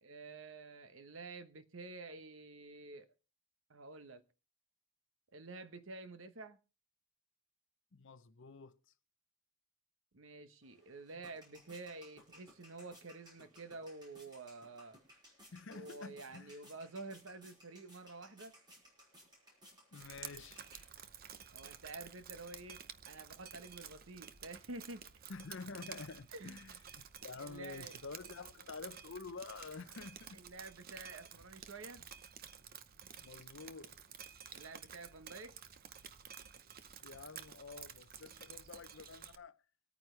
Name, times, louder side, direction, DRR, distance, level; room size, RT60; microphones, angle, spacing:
voice 1, 0.0-3.1 3.7-4.2 5.3-6.6 10.1-15.0 15.7-18.5 21.5-25.0 26.3-26.6 27.4-28.0 30.3-32.0 34.5-35.5, right 3 dB, 60° right, 1.1 m, -49 dB
voice 2, 7.9-8.8 15.5-16.5 19.9-20.7 25.3-30.4 33.2-34.0 37.0-39.6, left 4 dB, 60° left, 0.7 m, -49 dB
sound 1, 10.6-21.3, equal, 20° right, 5.3 m, -61 dB
Drip, 20.0-39.4, right 8 dB, 45° right, 0.7 m, -52 dB
25.0 x 9.2 x 3.3 m
head